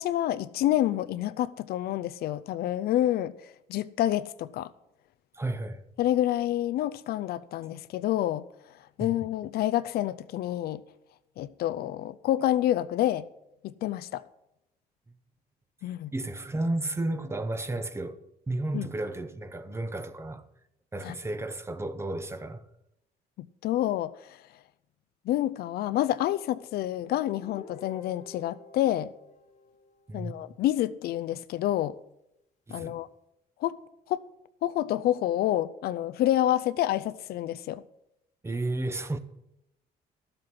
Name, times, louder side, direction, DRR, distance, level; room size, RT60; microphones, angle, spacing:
voice 1, 0.0-3.3 3.7-4.7 6.0-8.4 9.0-10.8 11.4-13.2 13.6-14.2 15.8-16.1 18.7-18.9 21.0-21.1 23.6-24.1 25.3-29.1 30.1-32.0 32.7-33.1 33.6-33.8 34.1-34.2 34.6-37.8, left 13 dB, 70° left, 0.5 m, -28 dB
voice 2, 5.3-5.8 9.0-9.1 16.1-20.5 20.9-22.6 30.1-30.4 32.7-33.0 38.4-39.2, right 2 dB, 15° right, 0.8 m, -33 dB
Guitar, 27.0-30.5, left 4 dB, 45° left, 1.4 m, -50 dB
12.5 x 7.8 x 5.9 m
cardioid pair, 110°, 17 cm